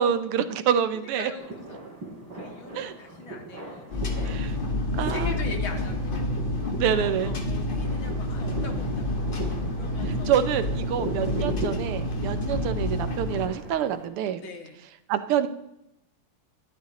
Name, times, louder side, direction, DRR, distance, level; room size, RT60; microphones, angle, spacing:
voice 1, 0.0-1.3 2.7-2.9 4.2-4.5 4.9-5.3 6.8-7.3 10.3-14.4 15.1-15.5, right 9 dB, 85° right, 11 dB, 1.8 m, -26 dB
voice 2, 0.9-1.8 2.3-6.4 6.9-9.3 9.7-10.5 11.2-11.4 12.2-12.5 14.4-14.8, left 4 dB, 65° left, 3 dB, 2.3 m, -41 dB
sound 1, 1.4-14.1, right 2 dB, 55° right, 4.9 m, -39 dB
sound 2, 3.9-13.5, left 1 dB, 30° left, 1.4 m, -29 dB
12.0 x 10.5 x 3.7 m, 0.86 s
omnidirectional pair, 2.4 m